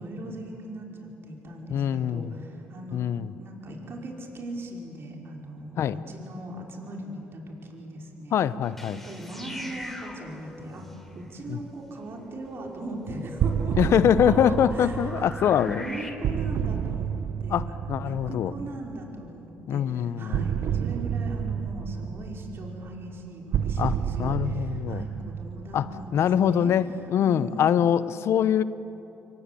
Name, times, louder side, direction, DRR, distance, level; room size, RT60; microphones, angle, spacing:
voice 1, 0.0-3.1 3.4-8.4 8.9-15.3 15.6-27.8, right 1 dB, 55° right, 0 dB, 5.3 m, -39 dB
voice 2, 1.7-2.4 2.9-3.3 5.8-6.0 8.3-9.0 11.5-11.6 13.7-15.8 17.5-18.5 19.7-20.4 23.8-25.0 25.7-28.6, left 9 dB, 65° left, 15 dB, 0.9 m, -24 dB
sound 1, 8.6-16.1, left 1 dB, 5° left, 4.2 m, -43 dB
sound 2, 13.4-19.1 20.3-26.6, right 8 dB, 70° right, 0.9 m, -30 dB
29.5 x 23.0 x 8.6 m, 3.0 s
supercardioid pair, 70°, 5 cm